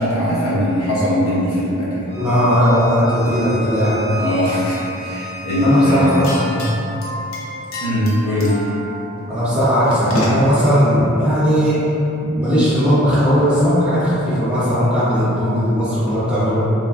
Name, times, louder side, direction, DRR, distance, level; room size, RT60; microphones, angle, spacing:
voice 1, 0.0-2.2 4.1-6.3 7.8-8.5, left 1 dB, 90° left, -10 dB, 1.1 m, -19 dB
Bowed string instrument, 2.1-6.5, left 2 dB, 55° left, 1.0 m, -33 dB
voice 2, 2.1-4.0 5.6-6.7 9.3-11.8 12.2-16.7, equal, 5° right, -13 dB, 1.1 m, -17 dB
sound 1, 6.0-10.6, left 1 dB, 70° left, 0.6 m, -29 dB
3.3 x 3.2 x 2.4 m, 2.9 s
head